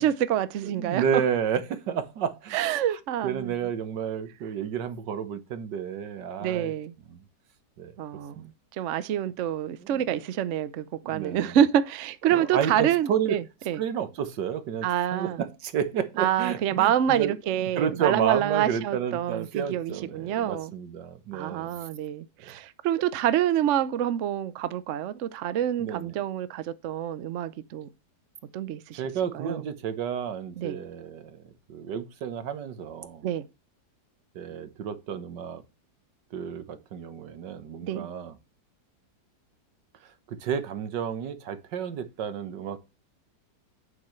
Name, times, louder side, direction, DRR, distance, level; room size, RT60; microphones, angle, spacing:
voice 1, 0.0-1.0 2.5-3.5 6.4-6.9 8.0-13.8 14.8-15.4 16.2-20.7 21.3-27.9 28.5-29.0 29.3-29.6 30.6-30.8 33.2-33.4 37.8-38.1, right 10 dB, 60° right, 0.8 m, -27 dB
voice 2, 0.6-6.7 7.1-7.2 7.8-8.0 8.3-8.5 9.8-10.2 11.0-11.6 12.3-13.4 13.8-17.4 17.6-21.8 22.4-22.6 25.8-26.2 28.9-33.3 34.3-35.6 36.3-38.3 40.0-42.8, right 8 dB, 85° right, 1.7 m, -31 dB
8.8 x 8.0 x 3.1 m
omnidirectional pair, 1.8 m